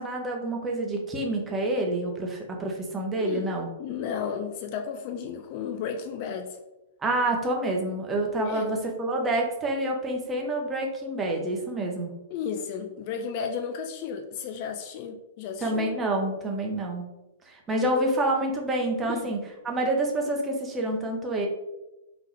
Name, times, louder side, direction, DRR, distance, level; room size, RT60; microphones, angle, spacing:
voice 1, 0.0-3.7 7.0-12.1 15.6-17.0 17.5-21.5, right 1 dB, 15° right, 1 dB, 0.7 m, -28 dB
voice 2, 3.2-3.5 3.8-6.6 8.5-8.8 12.3-15.9 19.0-19.3, left 7 dB, 40° left, 4 dB, 0.3 m, -33 dB
3.6 x 2.9 x 3.1 m, 0.99 s
figure-of-eight pair, 105°, 0 cm